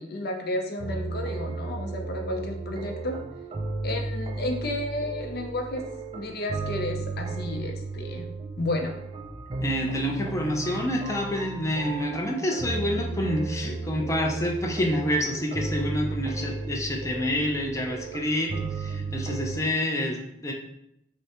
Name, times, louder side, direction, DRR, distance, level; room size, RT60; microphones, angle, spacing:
voice 1, 0.0-3.2 3.8-5.8 6.1-8.3 8.6-8.9, left 1 dB, 60° left, 3 dB, 0.6 m, -32 dB
sound 1, 0.8-19.6, right 3 dB, 30° right, 0.4 m, -34 dB
voice 2, 9.6-20.5, left 1 dB, 15° left, 1 dB, 0.5 m, -28 dB
5.9 x 2.1 x 2.9 m, 0.79 s
head